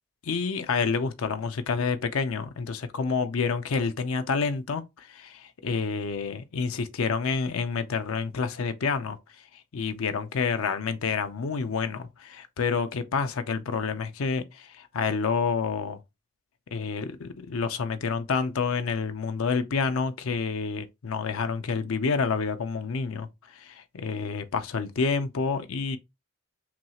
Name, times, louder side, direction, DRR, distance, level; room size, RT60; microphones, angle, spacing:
voice 1, 0.2-9.2 9.5-16.0 16.7-26.0, left 5 dB, 75° left, 0.5 m, -28 dB
5.9 x 2.3 x 2.8 m
head